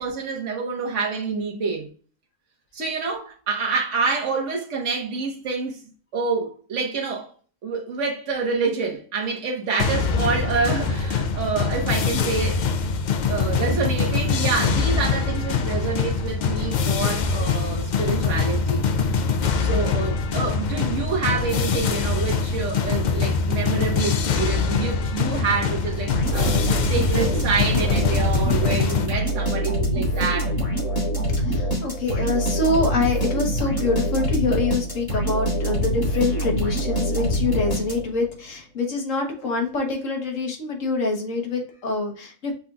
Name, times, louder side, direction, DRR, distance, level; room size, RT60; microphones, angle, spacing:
voice 1, 0.0-1.9 2.7-5.8 6.1-7.3 7.6-12.7 13.3-18.9 19.6-30.6, right 4 dB, 60° right, 1.5 m, -27 dB
sound 1, 9.8-29.1, left 5 dB, 85° left, 0.4 m, -23 dB
sound 2, 26.1-38.3, equal, 15° left, 1.9 m, -25 dB
voice 2, 31.3-42.5, left 3 dB, 70° left, 1.6 m, -25 dB
5.9 x 3.8 x 2.3 m
omnidirectional pair, 1.4 m